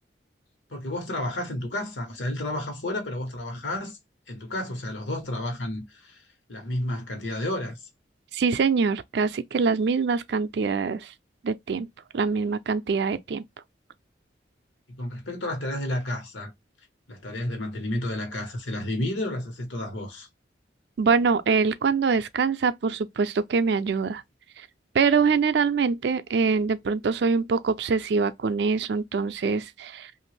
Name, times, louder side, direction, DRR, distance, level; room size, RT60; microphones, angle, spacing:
voice 1, 0.7-4.0 4.3-6.2 6.5-7.8 14.9-16.5 17.1-20.3, left 1 dB, 85° left, 1.2 m, -31 dB
voice 2, 8.3-11.1 11.4-11.9 12.1-13.4 21.0-24.2 24.9-30.1, right 5 dB, 65° right, 0.4 m, -24 dB
2.9 x 2.5 x 3.0 m
head